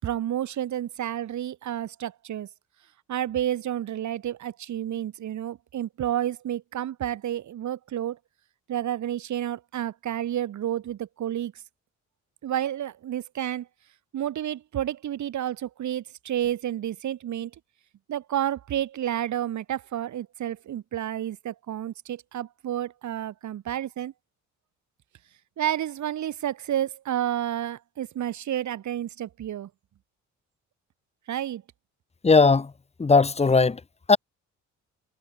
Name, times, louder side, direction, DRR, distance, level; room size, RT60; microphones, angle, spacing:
voice 1, 0.0-2.5 3.1-8.2 8.7-11.5 12.4-13.7 14.1-17.5 18.1-24.1 25.6-29.7 31.3-31.6, right 11 dB, 70° right, 5.1 m, -30 dB
voice 2, 32.2-32.7 33.0-33.8 34.1-34.2, left 4 dB, 20° left, 1.2 m, -18 dB
cardioid pair, 90°, 30 cm